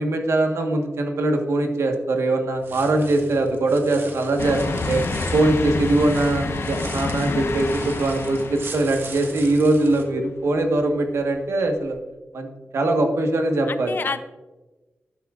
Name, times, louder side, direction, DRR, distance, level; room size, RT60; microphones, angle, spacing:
voice 1, 0.0-5.0 5.3-12.0 12.3-12.5 12.7-14.0, right 2 dB, 85° right, 4 dB, 1.4 m, -22 dB
sound 1, 2.5-10.0, right 3 dB, 55° right, 1.4 m, -39 dB
sound 2, 4.4-10.0 10.4-10.5 11.9-12.0, left 3 dB, 70° left, 1.1 m, -29 dB
voice 2, 7.4-7.9 13.7-14.2, left 4 dB, 50° left, 10 dB, 0.7 m, -30 dB
12.0 x 10.0 x 2.5 m, 1.1 s
wide cardioid pair, 145°, 5 cm